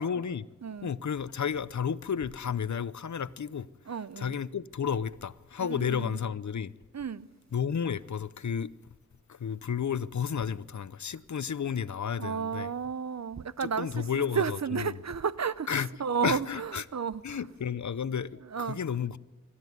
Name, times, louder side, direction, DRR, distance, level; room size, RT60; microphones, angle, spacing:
voice 1, 0.0-0.4 0.8-3.7 4.2-6.8 7.5-8.7 9.3-12.7 13.6-15.0 15.7-15.9 16.2-16.8 17.2-19.2, left 7 dB, 75° left, 0.6 m, -32 dB
voice 2, 3.9-4.3 5.6-6.2 6.9-7.3 12.2-17.4 18.5-18.8, right 6 dB, 65° right, 0.7 m, -32 dB
25.5 x 13.0 x 9.4 m
wide cardioid pair, 75°, 29 cm